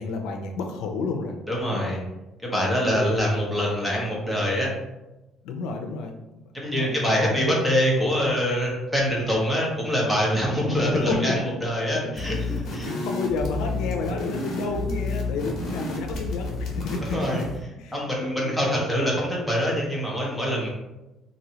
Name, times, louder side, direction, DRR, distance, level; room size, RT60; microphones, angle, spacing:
voice 1, 0.0-1.3 1.7-1.9 5.4-6.2 6.6-7.6 10.6-11.5 11.9-12.2 12.8-17.4 17.8-18.8, left 4 dB, 85° left, 3 dB, 0.4 m, -31 dB
voice 2, 1.5-2.0 2.4-4.7 6.5-12.9 17.1-17.4 17.9-20.7, equal, ahead, -3 dB, 0.8 m, -24 dB
sound 1, 12.1-17.6, left 2 dB, 50° left, 0.9 m, -30 dB
3.1 x 2.6 x 2.8 m, 0.99 s
cardioid pair, 150°, 0 cm